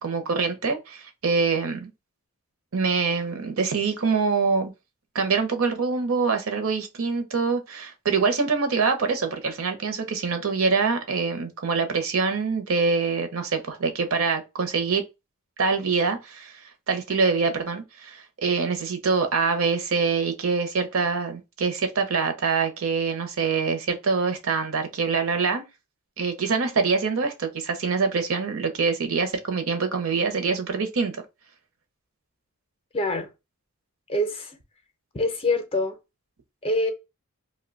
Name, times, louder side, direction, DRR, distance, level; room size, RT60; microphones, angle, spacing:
voice 1, 0.0-1.9 2.7-4.7 5.1-15.0 15.6-16.6 16.9-25.6 26.2-31.2, right 4 dB, 65° right, 0.7 m, -25 dB
voice 2, 32.9-33.3 34.1-34.6 35.1-36.0 36.6-36.9, left 1 dB, 25° left, 0.5 m, -25 dB
2.7 x 2.1 x 3.8 m
head